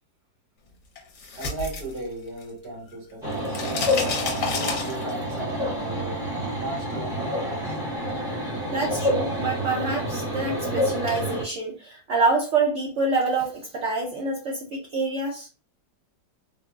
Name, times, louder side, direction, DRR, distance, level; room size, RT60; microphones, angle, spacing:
sound 1, 0.9-2.6 2.9-5.4, left 4 dB, 60° left, 1.1 m, -30 dB
voice 1, 1.3-4.1 4.4-6.2 6.6-7.8, right 2 dB, 85° right, -1 dB, 2.0 m, -37 dB
sound 2, 3.2-11.4, equal, 5° right, 0.8 m, -28 dB
voice 2, 8.7-15.5, right 3 dB, 60° right, 0 dB, 0.8 m, -26 dB
3.7 x 2.0 x 2.3 m, 0.35 s
omnidirectional pair, 1.8 m